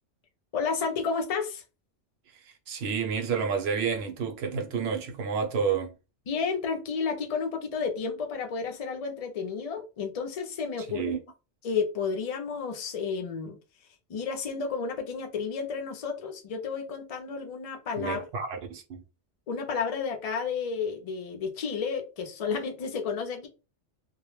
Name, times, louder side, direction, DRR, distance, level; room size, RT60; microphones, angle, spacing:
voice 1, 0.5-1.6 6.3-11.1 11.6-13.6 14.1-18.2 19.5-23.5, left 5 dB, 60° left, 0.3 m, -31 dB
voice 2, 2.7-5.9 10.9-11.2 18.0-19.0, right 6 dB, 65° right, 0.8 m, -30 dB
2.2 x 2.0 x 3.0 m
omnidirectional pair, 1.2 m